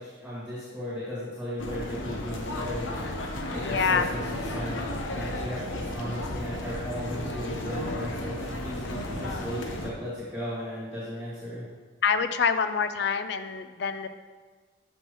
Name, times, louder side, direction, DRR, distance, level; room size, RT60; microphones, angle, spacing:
voice 1, 0.0-3.1 3.5-4.8 5.1-11.6, equal, 5° right, -10 dB, 2.1 m, -36 dB
sound 1, 1.6-9.9, left 1 dB, 75° left, 0.9 m, -34 dB
voice 2, 3.6-4.1 12.0-14.1, left 6 dB, 55° left, 10 dB, 0.4 m, -26 dB
12.5 x 5.4 x 3.1 m, 1.5 s
head